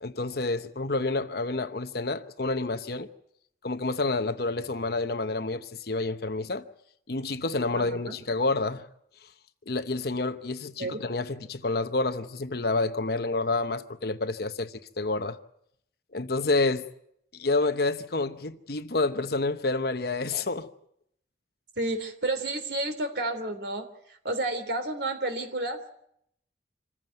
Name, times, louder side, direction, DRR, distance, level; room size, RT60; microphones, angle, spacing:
voice 1, 0.0-3.1 3.6-6.7 7.1-8.9 9.7-15.4 16.1-16.9 17.3-20.7, left 3 dB, 60° left, 0.9 m, -29 dB
voice 2, 7.7-8.1 10.8-11.0 21.8-25.9, right 2 dB, 70° right, 3.2 m, -31 dB
26.5 x 15.0 x 9.2 m
head